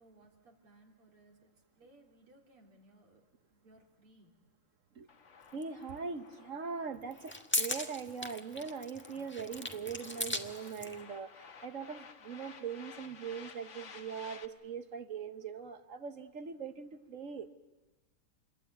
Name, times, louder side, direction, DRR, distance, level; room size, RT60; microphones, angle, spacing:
voice 1, 0.0-3.2 3.5-4.3 9.1-9.2, right 1 dB, 85° right, 0 dB, 4.3 m, -62 dB
sound 1, 5.1-14.5, left 6 dB, 45° left, 1.1 m, -55 dB
voice 2, 5.5-11.3 11.6-17.5, right 6 dB, 45° right, 10 dB, 1.1 m, -41 dB
sound 2, 5.6-5.7 7.0-11.0, left 1 dB, 5° left, 1.1 m, -37 dB
28.0 x 21.5 x 9.3 m, 1.1 s
omnidirectional pair, 2.4 m